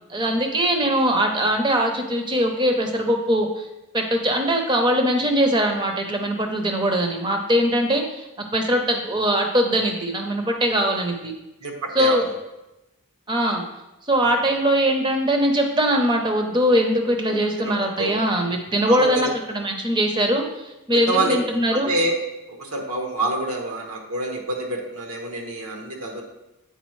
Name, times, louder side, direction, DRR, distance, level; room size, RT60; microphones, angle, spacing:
voice 1, 0.1-3.7 3.9-8.3 8.5-11.3 11.9-12.2 13.3-13.6 14.1-20.4 20.9-21.9, equal, 20° right, 4 dB, 0.6 m, -21 dB
voice 2, 11.6-12.2 14.2-14.3 17.6-18.1 18.9-19.3 21.1-21.4 21.7-22.2 22.6-26.2, right 2 dB, 80° right, 1 dB, 1.1 m, -27 dB
8.0 x 4.7 x 3.1 m, 0.96 s
head